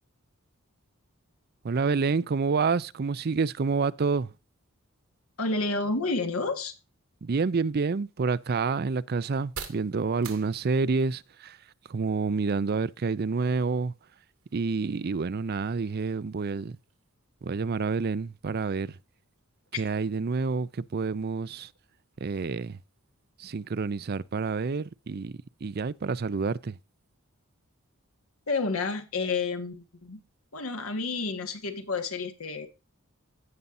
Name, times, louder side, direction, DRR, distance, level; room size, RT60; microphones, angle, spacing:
voice 1, 1.6-4.3 7.2-11.6 11.9-13.9 14.5-16.8 17.4-19.0 19.8-21.7 22.2-22.8 23.4-26.8, right 4 dB, 45° right, 0.5 m, -28 dB
voice 2, 5.4-6.7 28.5-30.2 30.5-32.7, left 3 dB, 80° left, 1.6 m, -30 dB
sound 1, 7.4-25.0, right 6 dB, 75° right, 2.4 m, -53 dB
16.5 x 5.5 x 2.6 m
head